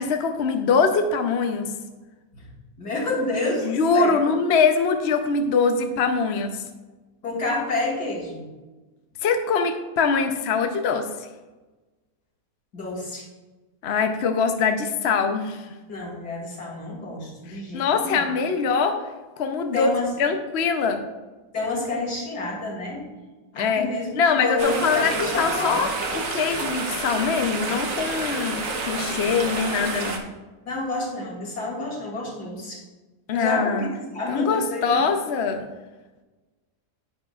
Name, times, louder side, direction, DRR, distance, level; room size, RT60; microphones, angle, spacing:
voice 1, 0.0-1.7 3.6-6.6 9.2-11.1 13.8-15.7 17.5-19.0 19.4-19.9 20.2-21.0 23.5-23.9 24.2-30.2 33.3-33.9 34.3-35.6, left 5 dB, 55° left, 6 dB, 0.8 m, -23 dB
voice 2, 2.8-4.3 7.2-8.5 12.7-13.2 15.9-18.3 19.7-20.1 21.5-23.1 23.5-25.9 30.7-32.8 33.3-35.0, left 2 dB, 75° left, -3 dB, 3.1 m, -29 dB
sound 1, 24.6-30.2, right 3 dB, 55° right, 1.4 m, -29 dB
10.5 x 9.5 x 2.4 m, 1.2 s
omnidirectional pair, 1.7 m